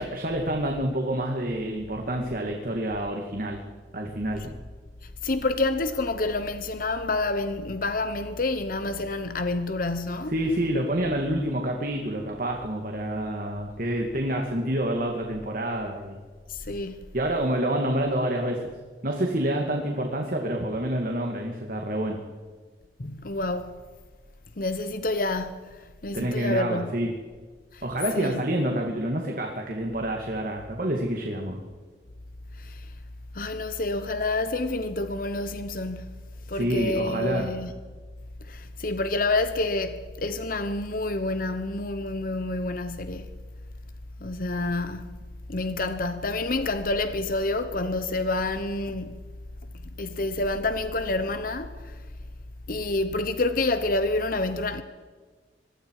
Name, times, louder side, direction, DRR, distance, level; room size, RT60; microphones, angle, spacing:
voice 1, 0.0-3.6 3.9-4.5 10.3-16.2 17.1-18.7 19.0-22.2 26.1-27.1 27.8-31.6 36.5-37.5, right 1 dB, 50° right, 2.4 m, -28 dB
voice 2, 5.0-10.3 16.5-17.0 23.0-23.8 24.6-27.0 27.7-27.8 28.1-28.4 32.6-32.9 33.3-36.1 36.5-37.7 38.5-43.3 44.2-45.1 45.5-49.2 49.8-51.9 52.7-54.8, left 2 dB, 50° left, 1.0 m, -28 dB
25.5 x 21.5 x 4.9 m
head